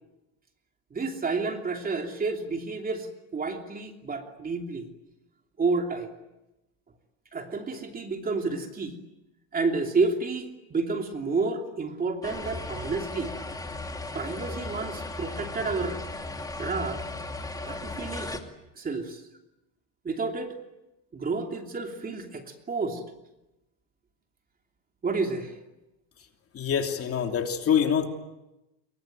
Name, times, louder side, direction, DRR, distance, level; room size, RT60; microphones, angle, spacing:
voice 1, 0.9-4.9 5.6-6.1 7.3-9.0 9.5-13.3 14.1-16.0 16.6-17.1 17.6-18.4 18.7-19.2 20.0-20.5 21.1-23.0 25.0-25.5, right 4 dB, 20° right, 4 dB, 3.0 m, -30 dB
sound 1, 12.2-18.4, left 2 dB, 10° left, 2.5 m, -36 dB
voice 2, 26.5-28.1, left 8 dB, 35° left, 4 dB, 3.0 m, -25 dB
26.5 x 23.5 x 9.3 m, 0.96 s
cardioid pair, 145°, 42 cm